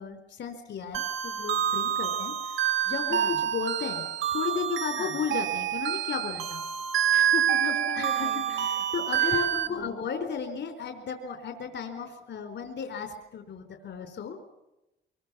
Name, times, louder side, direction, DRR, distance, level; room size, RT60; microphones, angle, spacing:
voice 1, 0.0-2.6 2.9-4.0 4.3-6.6 7.6-14.4, left 6 dB, 65° left, 6 dB, 4.3 m, -34 dB
sound 1, 0.9-9.7, right 10 dB, 85° right, 1.6 m, -27 dB
voice 2, 7.1-9.4 9.7-10.0, left 7 dB, 90° left, -1 dB, 4.7 m, -39 dB
24.5 x 23.0 x 7.1 m, 0.95 s
cardioid pair, 90°, 20 cm